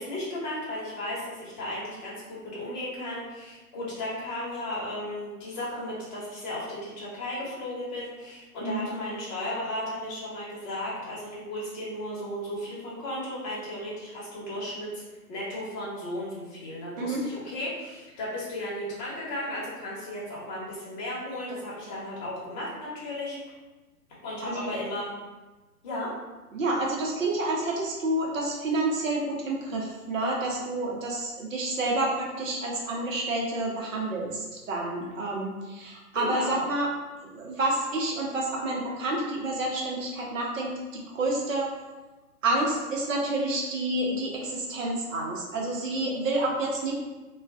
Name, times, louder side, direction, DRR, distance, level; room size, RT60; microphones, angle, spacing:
voice 1, 0.0-15.0 15.3-23.4 24.2-25.1 25.8-26.1 36.1-36.6, left 1 dB, 30° left, -7 dB, 1.1 m, -35 dB
voice 2, 26.5-36.9 37.3-41.7 42.4-46.9, right 2 dB, 55° right, -2 dB, 0.9 m, -29 dB
2.4 x 2.4 x 3.5 m, 1.2 s
figure-of-eight pair, 135°, 46 cm